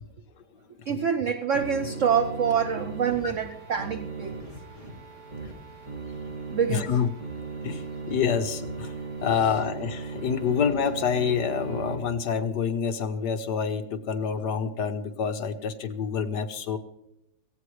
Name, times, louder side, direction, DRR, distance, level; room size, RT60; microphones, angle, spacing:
voice 1, 0.9-4.4 6.5-7.0, right 7 dB, 80° right, 9 dB, 0.6 m, -26 dB
sound 1, 1.5-11.9, right 4 dB, 40° right, 2.3 m, -37 dB
voice 2, 6.7-7.1 7.6-8.9 9.2-16.8, left 7 dB, 65° left, 7 dB, 1.4 m, -27 dB
17.0 x 16.0 x 3.2 m, 0.83 s
omnidirectional pair, 2.1 m